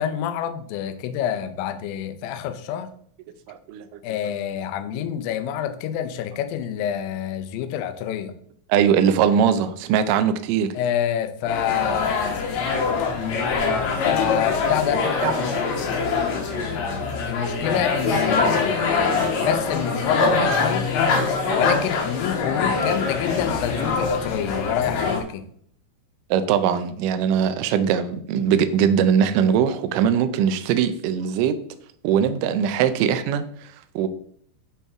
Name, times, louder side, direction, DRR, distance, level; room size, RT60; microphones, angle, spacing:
voice 1, 0.0-2.9 4.0-8.3 10.7-12.5 13.9-15.0 17.2-20.9 21.5-25.5, left 9 dB, 75° left, 9 dB, 2.3 m, -27 dB
voice 2, 3.5-4.0 8.7-10.8 15.2-15.3 26.3-31.6 32.0-34.1, right 8 dB, 85° right, 10 dB, 1.8 m, -21 dB
sound 1, 11.5-25.2, left 4 dB, 60° left, 2.1 m, -23 dB
10.0 x 4.3 x 3.6 m, 0.62 s
omnidirectional pair, 4.6 m